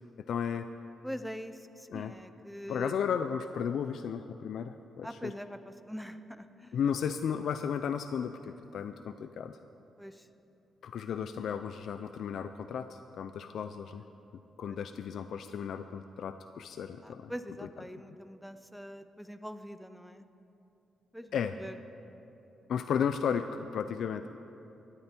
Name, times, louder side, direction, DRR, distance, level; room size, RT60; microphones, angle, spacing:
voice 1, 0.3-0.7 1.9-2.1 2.7-5.3 6.7-9.6 10.8-14.0 14.6-17.3 21.3-21.5 22.7-24.3, left 7 dB, 70° left, 10 dB, 0.4 m, -34 dB
voice 2, 1.0-3.0 5.0-6.8 10.0-10.3 14.7-14.8 17.0-20.2 21.1-21.8, equal, ahead, 10 dB, 0.6 m, -43 dB
17.5 x 12.5 x 4.4 m, 2.9 s
cardioid pair, 125°, 0 cm